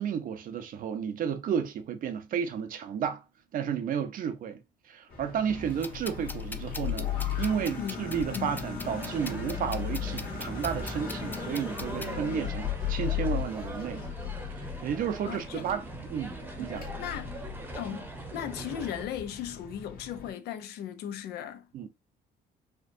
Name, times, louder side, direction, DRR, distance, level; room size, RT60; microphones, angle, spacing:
voice 1, 0.0-3.2 3.5-4.6 4.9-14.0 14.6-16.9 21.7-21.9, right 8 dB, 55° right, 0.6 m, -32 dB
sound 1, 5.1-20.3, left 9 dB, 55° left, 1.4 m, -37 dB
sound 2, 5.7-12.1, left 3 dB, 10° left, 0.3 m, -43 dB
sound 3, 8.8-19.0, right 2 dB, 10° right, 0.8 m, -41 dB
voice 2, 15.3-15.7 16.7-17.3 17.7-21.7, left 10 dB, 75° left, 0.6 m, -37 dB
4.3 x 2.3 x 2.6 m
cardioid pair, 110°, 17 cm